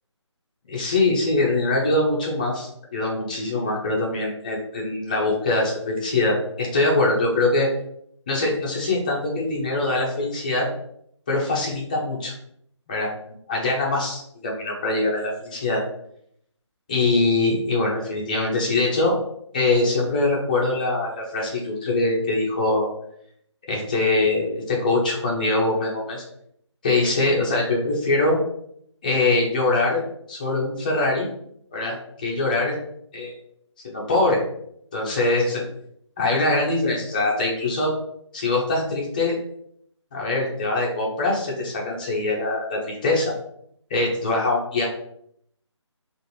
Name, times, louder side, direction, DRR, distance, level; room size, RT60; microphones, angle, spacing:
voice 1, 0.7-7.7 8.3-10.7 11.3-12.3 12.9-13.1 13.5-15.8 16.9-19.1 19.5-22.9 23.7-26.2 26.8-28.4 29.0-30.0 30.3-31.3 31.7-32.8 33.1-33.3 33.8-34.4 34.9-35.6 36.2-37.9 38.3-39.4 40.1-43.3 43.9-44.9, left 2 dB, 15° left, -3 dB, 0.6 m, -23 dB
4.4 x 2.5 x 3.1 m, 0.71 s
figure-of-eight pair, 160°, 16 cm